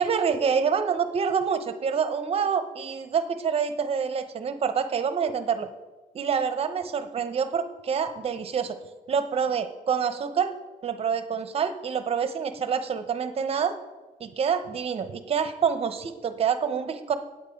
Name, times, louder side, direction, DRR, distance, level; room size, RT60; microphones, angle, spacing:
voice 1, 0.0-5.7 6.1-8.8 9.1-10.5 10.8-13.8 14.2-17.2, right 6 dB, 40° right, 10 dB, 0.8 m, -27 dB
8.9 x 8.3 x 5.2 m, 1.2 s
cardioid pair, 130°, 15 cm